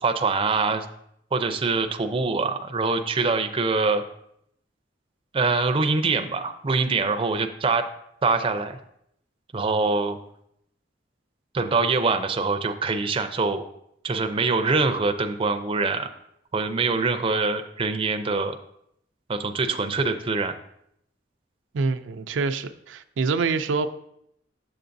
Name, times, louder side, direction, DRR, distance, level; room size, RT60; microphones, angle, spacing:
voice 1, 0.0-0.9 1.3-4.0 5.3-7.8 8.2-8.8 9.5-10.2 11.5-13.6 14.0-16.1 16.5-18.6 19.3-20.5, right 4 dB, 30° right, 7 dB, 0.4 m, -24 dB
voice 2, 21.7-23.9, right 4 dB, 90° right, 9 dB, 0.4 m, -26 dB
7.8 x 6.8 x 2.6 m, 0.74 s
head